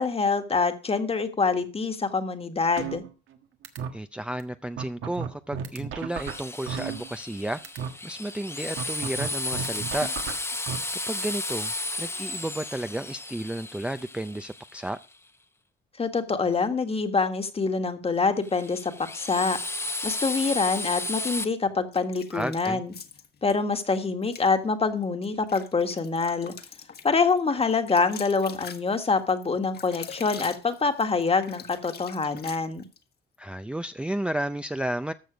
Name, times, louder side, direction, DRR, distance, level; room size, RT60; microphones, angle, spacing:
voice 1, 0.0-3.0 16.0-19.6 20.0-22.9 23.4-26.5 27.0-32.8, left 4 dB, 30° left, 8 dB, 1.6 m, -25 dB
sound 1, 2.8-3.4 3.6-3.9 4.4-4.5 4.8-7.4 7.6-7.9 8.8-10.8, right 8 dB, 85° right, 1.5 m, -33 dB
voice 2, 3.9-7.6 8.0-10.1 11.1-11.7 12.0-15.0 22.3-22.8 33.4-35.1, right 1 dB, 5° right, 10 dB, 0.5 m, -32 dB
Drill, 6.1-15.0 18.4-21.4, left 2 dB, 15° left, 1.0 m, -34 dB
sound 2, 21.9-23.5 24.2-24.5 25.0-33.0, left 7 dB, 55° left, 1.5 m, -44 dB
14.0 x 6.2 x 5.0 m, 0.35 s
cardioid pair, 90°, 20 cm